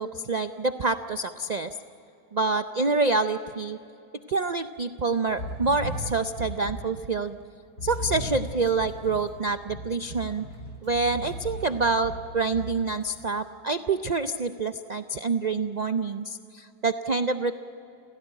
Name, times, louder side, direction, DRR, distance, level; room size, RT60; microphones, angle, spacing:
voice 1, 0.0-1.7 2.3-3.8 4.3-7.4 7.8-10.5 10.8-17.5, right 3 dB, 90° right, 9 dB, 0.3 m, -27 dB
sound 1, 5.3-7.0 7.8-13.2, equal, 45° left, 4.6 m, -37 dB
29.5 x 16.0 x 9.1 m, 2.9 s
omnidirectional pair, 1.7 m